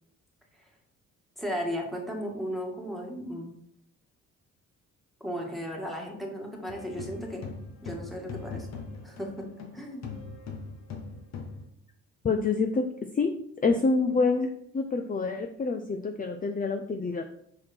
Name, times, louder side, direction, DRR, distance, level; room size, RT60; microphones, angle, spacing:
voice 1, 1.4-3.5 5.2-7.4 7.8-8.7 9.0-9.5 9.7-10.2, equal, ahead, 0 dB, 1.9 m, -35 dB
sound 1, 6.7-9.7 10.0-11.6, left 4 dB, 60° left, 1.3 m, -40 dB
voice 2, 12.2-12.8 13.1-13.3 13.6-17.2, left 4 dB, 30° left, 5 dB, 0.6 m, -27 dB
6.1 x 4.8 x 4.3 m, 0.71 s
cardioid pair, 90°, 30 cm